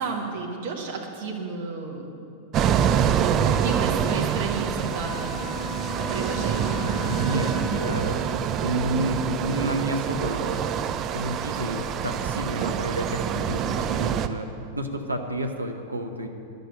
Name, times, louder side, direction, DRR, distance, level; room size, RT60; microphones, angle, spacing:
voice 1, 0.0-2.1 3.1-5.6 6.1-6.9, right 4 dB, 50° right, 1 dB, 1.6 m, -32 dB
sound 1, 2.5-14.3, right 8 dB, 35° right, 0.5 m, -26 dB
Bowed string instrument, 4.8-8.4, left 1 dB, 25° left, 2.1 m, -35 dB
voice 2, 6.8-10.8 11.1-16.3, right 1 dB, 80° right, 4 dB, 0.9 m, -30 dB
11.0 x 6.6 x 8.4 m, 2.6 s
figure-of-eight pair, 90°, 0 cm